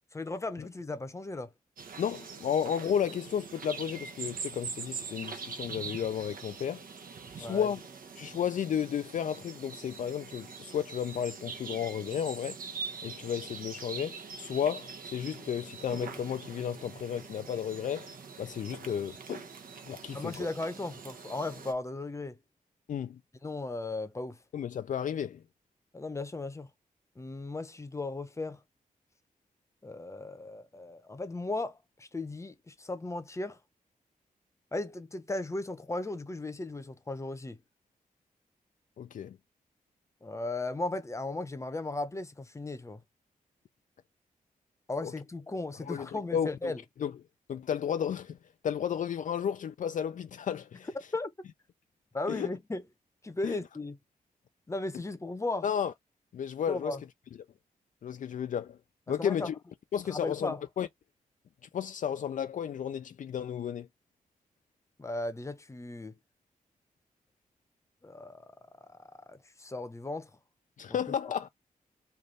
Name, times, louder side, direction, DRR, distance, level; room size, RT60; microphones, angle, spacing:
voice 1, 0.1-1.5 7.4-7.7 20.1-22.4 23.4-24.4 25.9-26.7 27.2-28.6 29.8-33.6 34.7-37.6 40.2-43.0 44.9-46.8 51.1-51.3 52.1-52.8 53.2-54.0 54.7-55.7 56.7-57.0 59.1-59.5 60.0-60.6 65.0-66.2 68.0-68.5 68.9-69.0 69.3-70.3, left 2 dB, 20° left, 0.8 m, -36 dB
birds & steps on gravel, 1.8-21.7, right 5 dB, 70° right, 1.0 m, -43 dB
voice 2, 2.0-6.8 7.4-7.8 8.2-12.6 13.0-18.1 18.4-19.4 19.9-20.5 22.9-23.2 24.5-25.4 39.0-39.4 45.0-45.1 45.9-46.7 47.0-47.1 47.5-48.4 48.6-50.9 52.3-52.5 53.4-53.6 55.6-55.9 56.3-57.0 58.0-58.8 59.1-59.6 59.9-60.9 61.7-63.9 70.8-71.5, left 8 dB, 60° left, 0.4 m, -33 dB
3.3 x 2.6 x 3.9 m
cardioid pair, 80°, 15 cm